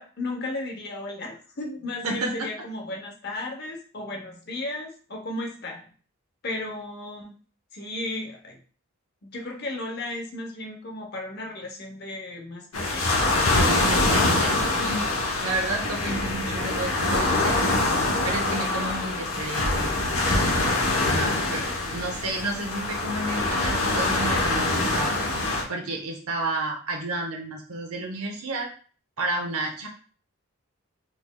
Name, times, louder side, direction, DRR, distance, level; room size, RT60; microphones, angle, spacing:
voice 1, 0.0-5.9 6.4-7.3 7.7-8.6 9.2-13.3 21.7-22.1, left 2 dB, 50° left, 2 dB, 0.7 m, -35 dB
sound 1, 12.7-25.6, left 2 dB, 90° left, 0.9 m, -24 dB
voice 2, 13.6-15.1 15.4-17.6 18.2-20.0 21.0-21.7 21.9-28.7 29.2-29.9, right 2 dB, 90° right, 2 dB, 0.7 m, -31 dB
4.0 x 3.1 x 2.2 m, 0.41 s
head